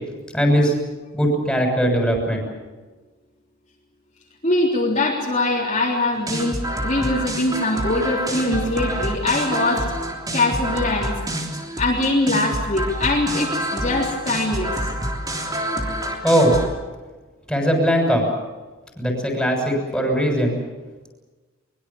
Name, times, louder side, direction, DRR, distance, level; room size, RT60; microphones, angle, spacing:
voice 1, 0.3-0.7 1.1-2.5 16.2-16.6 17.5-18.2 19.0-20.6, equal, 5° left, 1 dB, 6.8 m, -19 dB
voice 2, 4.4-6.6 6.8-10.0 10.3-11.2 11.8-14.9, left 2 dB, 30° left, -3 dB, 3.7 m, -22 dB
sound 1, 6.1-16.7, right 1 dB, 15° right, 3.4 m, -27 dB
23.5 x 22.5 x 7.3 m, 1.3 s
head